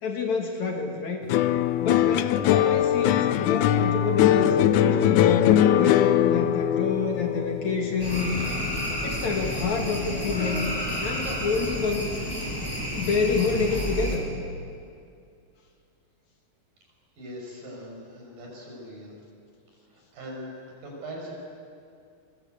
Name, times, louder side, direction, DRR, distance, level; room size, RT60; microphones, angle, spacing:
voice 1, 0.0-1.3 1.8-4.5 4.8-8.3 9.0-10.7 11.0-12.1 12.9-14.3, left 4 dB, 55° left, 3 dB, 3.2 m, -28 dB
sound 1, 1.3-9.8 10.1-10.7, left 11 dB, 75° left, 1.9 m, -22 dB
sound 2, 8.0-14.2, equal, 5° left, 5.0 m, -30 dB
voice 2, 17.2-19.1 19.9-21.3, equal, 70° right, -2 dB, 8.1 m, -41 dB
28.0 x 23.0 x 8.1 m, 2.5 s
omnidirectional pair, 4.2 m